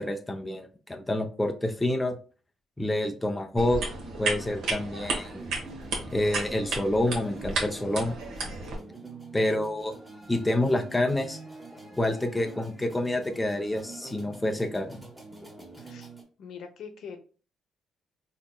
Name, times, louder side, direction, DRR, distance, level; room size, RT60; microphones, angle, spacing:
voice 1, 0.0-2.2 2.8-3.8 4.2-5.4 6.1-8.2 9.3-10.0 10.3-11.4 12.0-15.0, left 1 dB, 10° left, 3 dB, 0.5 m, -28 dB
sound 1, 3.6-8.8, right 3 dB, 75° right, 1.0 m, -33 dB
sound 2, 5.1-16.2, right 3 dB, 10° right, 1.0 m, -46 dB
voice 2, 15.8-16.1 16.4-17.2, left 6 dB, 70° left, 5 dB, 0.7 m, -42 dB
4.0 x 2.9 x 2.2 m, 0.37 s
cardioid pair, 90°, 0 cm